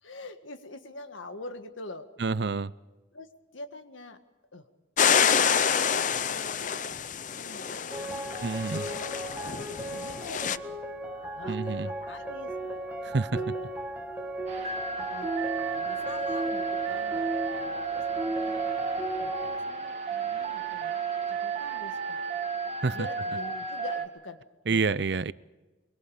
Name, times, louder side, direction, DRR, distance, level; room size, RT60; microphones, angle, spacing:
voice 1, 0.0-2.1 3.1-4.2 4.5-4.6 5.4-6.9 7.4-10.8 11.4-12.6 13.3-13.5 14.9-15.3 15.6-18.6 19.2-21.0 21.4-22.2 22.9-24.4 24.7-24.8, left 2 dB, 85° left, 8 dB, 1.7 m, -44 dB
voice 2, 2.2-2.7 8.4-8.9 11.5-11.9 13.0-13.4 22.8-23.0 24.7-25.3, right 4 dB, 60° right, 17 dB, 0.6 m, -28 dB
sound 1, 5.0-10.6, left 7 dB, 40° left, 0.6 m, -27 dB
sound 2, 7.9-19.6, right 1 dB, 10° right, 1.6 m, -35 dB
sound 3, 14.5-24.1, right 6 dB, 35° right, 2.3 m, -32 dB
24.0 x 24.0 x 5.0 m, 1.2 s
head